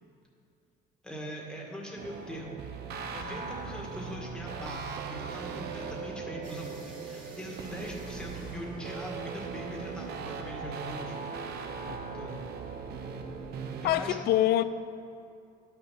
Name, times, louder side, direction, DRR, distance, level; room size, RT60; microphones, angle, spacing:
voice 1, 1.0-11.2 12.1-12.4 13.6-14.2, equal, 5° left, 2.0 m, -41 dB
sound 1, 2.0-13.9, right 5 dB, 70° right, 0.8 m, -39 dB
sound 2, 6.4-12.0, right 2 dB, 50° right, 2.6 m, -53 dB
voice 2, 13.8-14.6, left 13 dB, 70° left, 0.4 m, -25 dB
12.0 x 6.0 x 6.0 m
cardioid pair, 110°, 17 cm